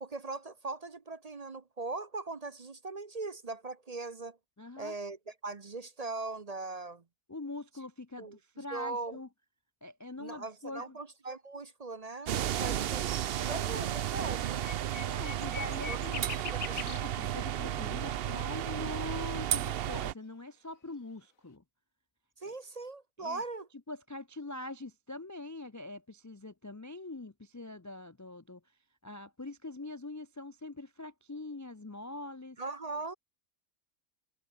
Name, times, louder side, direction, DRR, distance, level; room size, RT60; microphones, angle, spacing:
voice 1, 0.0-4.4 4.8-7.0 8.2-9.2 10.2-13.1 13.4-14.6 15.9-16.8 22.4-23.7 32.6-33.1, right 3 dB, 35° right, 0.8 m, -40 dB
voice 2, 4.6-5.0 7.3-9.3 9.8-11.0 12.4-12.9 15.0-16.3 16.7-21.6 22.5-22.6 23.2-23.4 23.9-28.6 29.0-32.6, left 2 dB, 30° left, 0.3 m, -43 dB
sound 1, 12.2-12.8 13.2-17.0, left 6 dB, 75° left, 2.1 m, -43 dB
sound 2, 12.3-20.1, right 11 dB, 60° right, 0.7 m, -33 dB
omnidirectional pair, 1.5 m